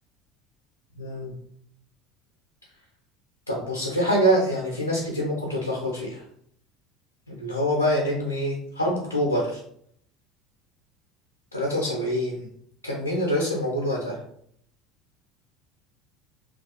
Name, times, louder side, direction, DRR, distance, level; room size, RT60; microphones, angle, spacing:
voice 1, 1.0-1.3 3.5-6.2 7.3-9.6 11.5-12.4 12.8-14.2, equal, 85° left, -3 dB, 0.4 m, -25 dB
2.4 x 2.2 x 2.4 m, 0.68 s
figure-of-eight pair, 65°, 0 cm